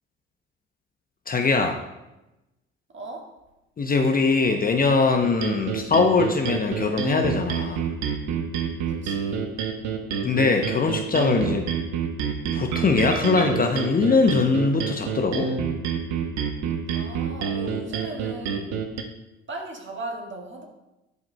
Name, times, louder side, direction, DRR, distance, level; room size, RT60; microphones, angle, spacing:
voice 1, 1.3-1.8 3.8-7.9 10.2-11.7 12.5-15.5, left 4 dB, 30° left, 5 dB, 0.7 m, -22 dB
voice 2, 2.9-3.3 8.9-9.4 16.9-18.9 19.5-20.6, right 2 dB, 40° right, 1 dB, 1.7 m, -37 dB
sound 1, 5.2-19.0, right 6 dB, 60° right, 0.8 m, -28 dB
10.5 x 4.8 x 2.2 m, 0.98 s
hypercardioid pair, 50°, 31 cm